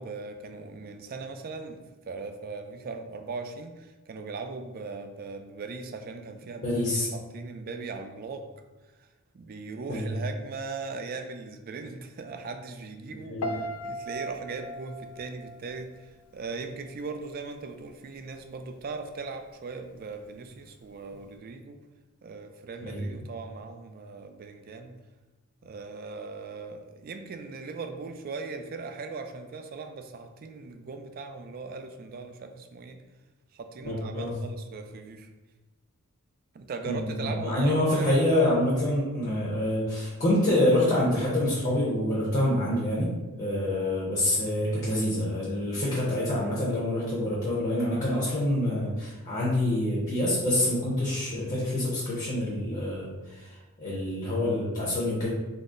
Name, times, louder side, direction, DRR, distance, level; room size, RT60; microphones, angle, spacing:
voice 1, 0.0-8.4 9.3-21.8 22.2-24.9 25.6-33.0 33.5-35.3 36.5-38.2, right 4 dB, 40° right, 6 dB, 0.3 m, -39 dB
voice 2, 6.6-7.1 9.9-10.1 13.1-13.5 22.8-23.1 33.8-34.3 36.8-43.1 43.4-55.3, left 1 dB, 35° left, -6 dB, 0.8 m, -26 dB
Piano, 13.4-16.5 16.8-17.2, equal, 75° left, 0.4 m, -37 dB
3.9 x 2.0 x 3.7 m, 1.1 s
head